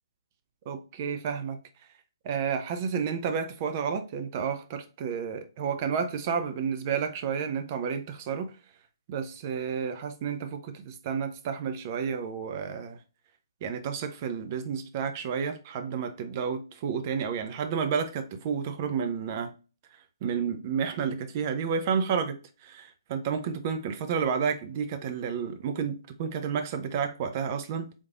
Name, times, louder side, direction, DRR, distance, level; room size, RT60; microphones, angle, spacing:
voice 1, 0.7-1.6 2.2-8.5 9.1-13.0 13.6-19.5 20.2-27.9, right 6 dB, 30° right, 0.5 m, -31 dB
3.5 x 3.1 x 2.4 m
figure-of-eight pair, 135°, 2 cm